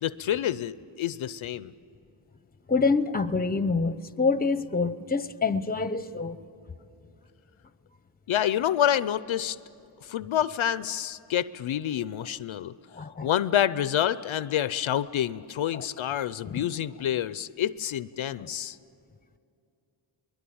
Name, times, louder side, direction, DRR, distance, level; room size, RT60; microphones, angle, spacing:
voice 1, 0.0-1.7 8.3-9.6 10.0-12.7 13.2-18.8, left 10 dB, 70° left, 0.6 m, -28 dB
voice 2, 2.7-6.4 12.9-13.3 15.7-15.8 16.5-16.6 18.4-18.5, left 4 dB, 20° left, 0.7 m, -26 dB
22.5 x 21.0 x 8.6 m
cardioid pair, 60°, 50 cm